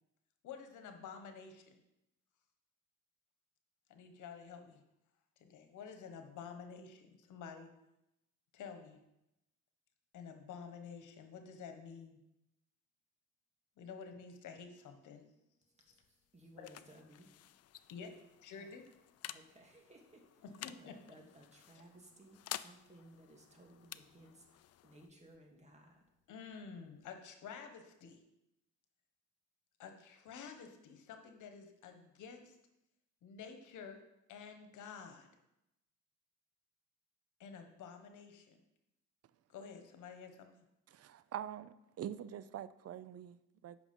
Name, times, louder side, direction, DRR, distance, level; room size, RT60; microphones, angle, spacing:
voice 1, 0.4-1.8 3.9-4.8 5.4-7.7 8.5-9.0 10.1-12.2 13.8-15.2 16.6-16.7 17.9-18.1 18.4-18.8 20.4-20.9 26.3-28.2 29.8-32.6 33.2-34.0 34.3-35.3 37.4-38.6 39.5-40.6, left 6 dB, 80° left, 6 dB, 1.3 m, -50 dB
sound 1, 15.9-27.2, left 13 dB, 55° left, 0.4 m, -52 dB
voice 2, 16.3-17.3 18.6-18.7 19.3-20.4 20.8-26.0, right 1 dB, 20° right, 1 dB, 2.2 m, -60 dB
voice 3, 40.9-43.8, right 10 dB, 55° right, 15 dB, 0.5 m, -45 dB
8.4 x 6.1 x 5.4 m, 0.88 s
cardioid pair, 90°, 30 cm